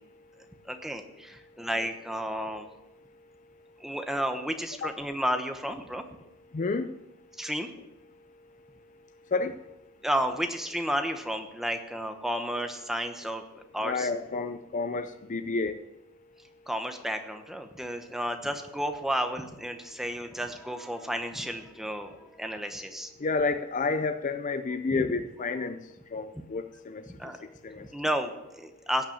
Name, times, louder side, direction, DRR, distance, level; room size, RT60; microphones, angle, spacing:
voice 1, 0.7-2.7 3.8-6.0 7.4-7.7 10.0-14.1 16.7-23.1 27.1-27.4 27.7-29.1, equal, ahead, 6 dB, 1.1 m, -32 dB
voice 2, 6.5-6.9 9.3-9.6 13.8-15.8 23.2-25.8 26.1-27.0 27.6-27.8, left 3 dB, 35° left, 10 dB, 0.5 m, -30 dB
16.5 x 5.7 x 8.7 m, 0.92 s
head